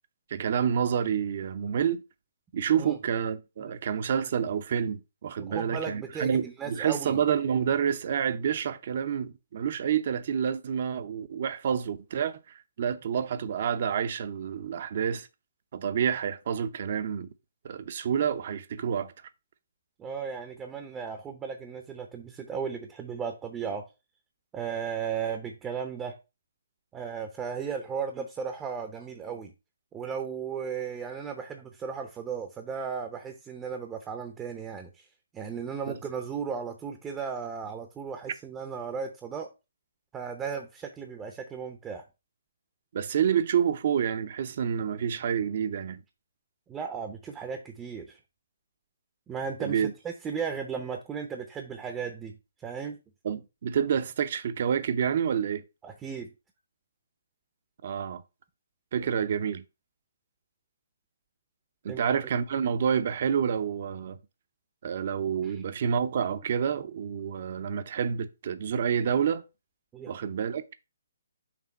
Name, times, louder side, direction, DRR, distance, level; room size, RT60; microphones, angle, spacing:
voice 1, 0.3-2.0 2.5-15.3 15.7-17.3 17.6-19.1 35.9-36.0 42.9-46.0 49.6-49.9 53.2-55.6 57.8-58.2 58.9-59.6 61.8-64.2 64.8-69.4 70.1-70.6, right 8 dB, 50° right, 0.7 m, -28 dB
voice 2, 5.4-7.2 20.0-23.9 24.5-26.2 26.9-29.5 29.9-35.1 35.3-39.5 40.1-42.0 46.7-48.2 49.3-52.4 52.6-53.0 55.8-56.3 59.0-59.1 61.9-62.0 65.4-65.6 69.9-70.1, right 6 dB, 15° right, 0.7 m, -35 dB
6.0 x 3.6 x 5.3 m
hypercardioid pair, 150°, 0 cm